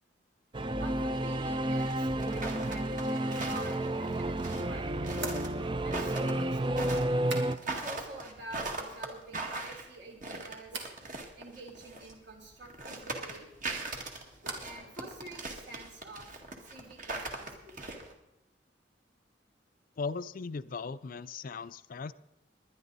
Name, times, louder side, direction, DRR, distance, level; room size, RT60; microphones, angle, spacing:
Singing / Musical instrument, 0.5-7.6, right 1 dB, 25° right, 0.5 m, -31 dB
voice 1, 0.7-5.2 5.8-7.0 7.6-10.9 11.4-13.5 14.6-16.3 16.6-18.1, right 2 dB, 65° right, 1 dB, 3.5 m, -48 dB
sound 1, 1.8-12.1 12.6-18.1, right 2 dB, 45° right, 2.0 m, -40 dB
sound 2, 5.1-8.0 8.2-8.9 9.2-9.8 10.7-11.0 13.4-14.9 15.1-15.8, right 2 dB, 90° right, 2.4 m, -45 dB
voice 2, 20.0-22.1, left 4 dB, 50° left, 14 dB, 0.4 m, -38 dB
21.0 x 10.5 x 4.1 m, 0.90 s
head